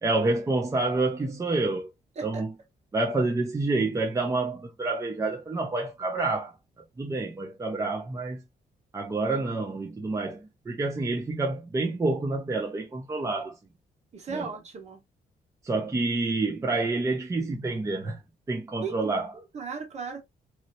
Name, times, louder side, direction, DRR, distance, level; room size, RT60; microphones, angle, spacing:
voice 1, 0.0-1.9 2.2-2.5 2.9-6.5 7.0-8.4 8.9-13.6 14.3-14.5 15.6-18.2 18.5-19.3, right 2 dB, 20° right, 0.6 m, -28 dB
voice 2, 14.1-15.0 18.8-20.2, right 5 dB, 45° right, 1.1 m, -37 dB
3.0 x 2.8 x 2.6 m
wide cardioid pair, 165°, 16 cm